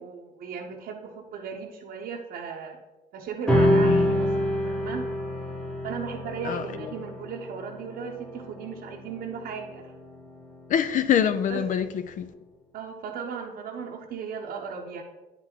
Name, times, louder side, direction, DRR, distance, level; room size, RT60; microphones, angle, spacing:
voice 1, 0.0-2.8 3.1-5.1 5.8-9.9 11.5-11.7 12.7-15.0, right 6 dB, 65° right, 0.8 m, -36 dB
sound 1, 3.5-10.2, left 1 dB, 5° left, 1.1 m, -27 dB
voice 2, 3.7-4.1 6.4-6.9 10.7-12.3, left 8 dB, 50° left, 0.4 m, -26 dB
9.5 x 3.9 x 4.4 m
cardioid pair, 110°, 17 cm